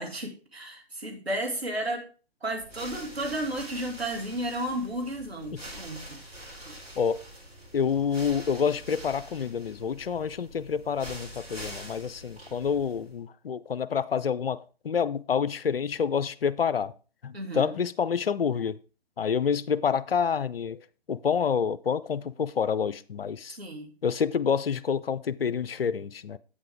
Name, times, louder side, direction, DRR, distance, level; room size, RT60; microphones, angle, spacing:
voice 1, 0.0-2.1 2.4-6.2 6.5-6.8 17.3-17.7 23.6-23.9, right 1 dB, 80° right, 2.3 m, -33 dB
sound 1, 2.5-13.2, equal, 15° right, 2.2 m, -45 dB
voice 2, 7.7-16.9 17.2-18.8 19.2-23.6 24.0-26.4, left 7 dB, 65° left, 0.5 m, -28 dB
8.4 x 7.5 x 3.5 m
figure-of-eight pair, 135°, 31 cm